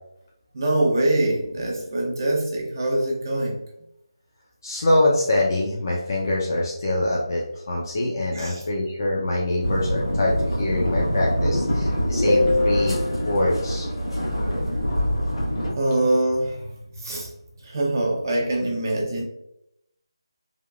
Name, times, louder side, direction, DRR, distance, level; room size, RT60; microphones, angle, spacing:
voice 1, 0.5-3.6 8.3-8.7 15.8-16.7 17.0-17.3 17.6-19.2, right 1 dB, 45° right, -2 dB, 0.5 m, -24 dB
voice 2, 4.6-13.9, left 2 dB, 45° left, -3 dB, 0.5 m, -23 dB
sound 1, 9.6-15.7, equal, 90° left, 1.3 m, -25 dB
3.4 x 2.2 x 2.3 m, 0.82 s
figure-of-eight pair, 165°, 3 cm